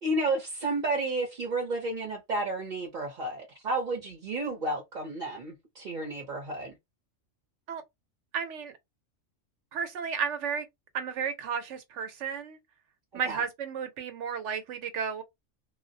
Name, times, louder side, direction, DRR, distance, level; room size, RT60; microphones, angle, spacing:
voice 1, 0.0-6.8 13.3-13.4, right 2 dB, 45° right, 0.8 m, -31 dB
voice 2, 8.3-8.7 9.7-10.6 10.9-12.6 13.1-15.2, right 7 dB, 70° right, 1.0 m, -33 dB
2.3 x 2.0 x 2.6 m
omnidirectional pair, 1.3 m